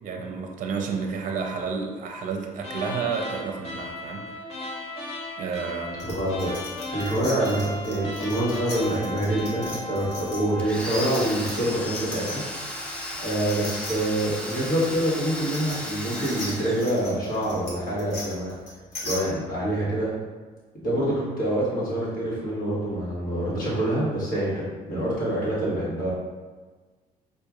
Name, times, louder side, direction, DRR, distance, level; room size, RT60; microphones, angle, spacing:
voice 1, 0.0-4.2 5.4-6.1, right 5 dB, 50° right, 2 dB, 0.5 m, -30 dB
sound 1, 2.6-10.9, left 1 dB, 35° left, 0.8 m, -36 dB
sound 2, 6.0-12.6 12.9-19.2, left 2 dB, 90° left, 1.3 m, -39 dB
voice 2, 6.1-6.5 6.9-12.4 13.2-18.6 19.0-20.1 20.8-26.1, right 1 dB, 55° left, -7 dB, 1.5 m, -26 dB
Domestic sounds home sounds, 10.6-17.4, left 1 dB, 5° left, 0.5 m, -35 dB
4.6 x 2.5 x 2.4 m, 1.4 s
cardioid pair, 110°, 17 cm